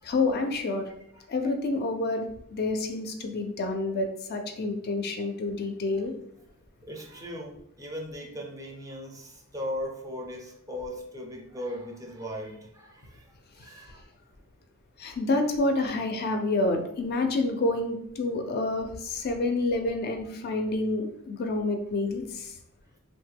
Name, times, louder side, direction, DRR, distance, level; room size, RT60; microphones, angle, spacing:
voice 1, 0.0-0.9 1.3-6.1 15.0-22.5, left 2 dB, 45° left, 5 dB, 0.4 m, -28 dB
voice 2, 6.8-14.1, equal, 15° right, 0 dB, 0.4 m, -38 dB
3.0 x 2.1 x 3.4 m, 0.75 s
head